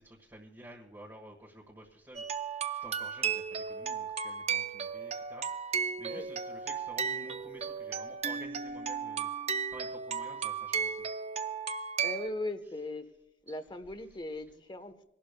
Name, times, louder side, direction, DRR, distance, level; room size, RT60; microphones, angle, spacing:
voice 1, 0.0-11.1 11.8-11.9 12.6-12.7 13.5-13.6 14.1-14.2, right 1 dB, 15° right, -2 dB, 1.4 m, -52 dB
sound 1, 2.1-12.3, right 6 dB, 40° right, 0.5 m, -35 dB
voice 2, 12.0-13.1 13.5-14.9, left 2 dB, 25° left, 10 dB, 0.9 m, -38 dB
27.0 x 12.0 x 2.2 m, 0.87 s
head